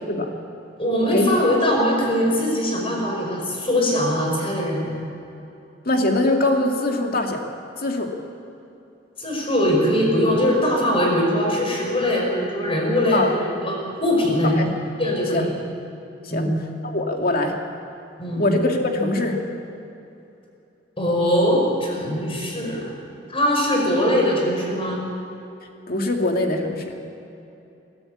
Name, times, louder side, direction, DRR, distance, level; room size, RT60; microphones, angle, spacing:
voice 1, 0.8-4.9 9.2-14.5 15.0-15.6 16.3-16.5 18.2-18.4 21.0-23.0 23.3-25.0, equal, 30° left, -1 dB, 5.4 m, -21 dB
voice 2, 5.9-7.4 7.8-8.1 13.1-13.3 14.6-14.7 15.3-15.5 16.3-16.5 16.8-17.6 18.4-19.4 25.9-26.9, left 2 dB, 55° left, 2 dB, 2.3 m, -22 dB
23.0 x 13.0 x 8.7 m, 2.8 s
head